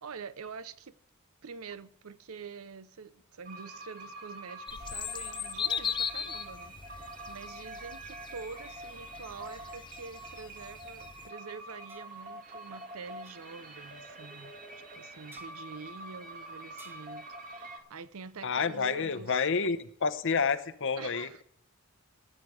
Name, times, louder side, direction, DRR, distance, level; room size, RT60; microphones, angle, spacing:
voice 1, 0.0-1.0 1.4-19.4 21.0-21.4, right 5 dB, 85° right, 0.7 m, -46 dB
sound 1, 3.5-17.8, right 2 dB, 40° right, 1.9 m, -46 dB
sound 2, 4.7-11.3, left 7 dB, 20° left, 0.4 m, -39 dB
sound 3, 11.9-12.2 13.2-13.4 15.3-15.5 16.8-17.2, right 3 dB, 10° right, 0.8 m, -54 dB
voice 2, 18.4-21.4, left 5 dB, 60° left, 0.9 m, -29 dB
18.0 x 8.0 x 4.9 m
head